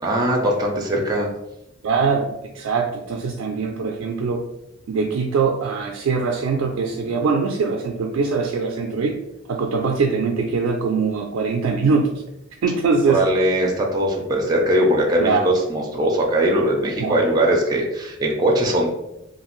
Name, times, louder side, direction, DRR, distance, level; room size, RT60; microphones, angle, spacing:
voice 1, 0.0-1.3 13.0-18.9, right 1 dB, 20° right, -1 dB, 0.4 m, -20 dB
voice 2, 1.8-2.3 2.5-4.4 4.9-9.1 9.5-12.2 12.6-13.2 15.2-15.4 17.0-17.2, right 4 dB, 80° right, 1 dB, 0.3 m, -22 dB
2.6 x 2.4 x 3.0 m, 0.87 s
head